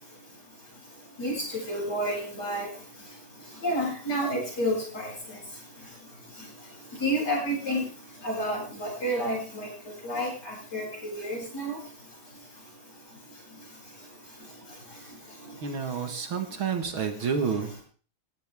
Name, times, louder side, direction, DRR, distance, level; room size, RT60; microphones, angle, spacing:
voice 1, 1.2-2.7 3.6-5.1 7.0-7.8 8.2-9.7 10.0-11.8, equal, 45° left, -2 dB, 8.4 m, -29 dB
voice 2, 15.6-17.8, right 6 dB, 65° right, 6 dB, 2.7 m, -29 dB
18.0 x 16.0 x 3.7 m, 0.40 s
omnidirectional pair, 2.4 m